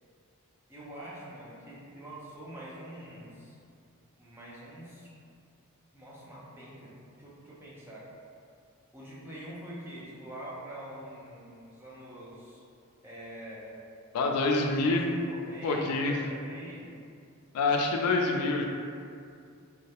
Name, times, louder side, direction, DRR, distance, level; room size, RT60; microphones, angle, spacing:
voice 1, 0.7-3.6 4.2-5.1 5.9-6.9 7.2-8.1 8.9-12.6 13.0-13.8 14.8-16.8, right 1 dB, 10° right, -8 dB, 0.4 m, -45 dB
voice 2, 14.1-15.0 15.6-16.2 17.5-18.6, left 3 dB, 85° left, 2 dB, 0.3 m, -26 dB
2.2 x 2.0 x 2.8 m, 2.4 s
head